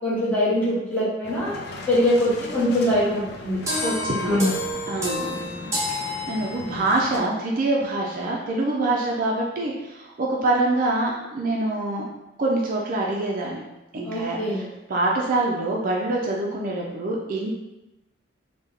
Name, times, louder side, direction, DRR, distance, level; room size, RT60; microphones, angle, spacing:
voice 1, 0.0-1.6 1.9-3.6 4.2-4.5 14.0-14.6, left 1 dB, 10° left, -9 dB, 1.1 m, -22 dB
sound 1, 1.2-7.2, left 3 dB, 55° left, 0.4 m, -39 dB
sound 2, 3.7-7.0, left 1 dB, 15° right, 0.8 m, -29 dB
voice 2, 3.8-4.4 4.9-5.3 5.6-12.1 12.4-13.6 13.9-17.5, right 2 dB, 45° right, -2 dB, 0.4 m, -25 dB
3.3 x 2.2 x 3.5 m, 0.98 s
head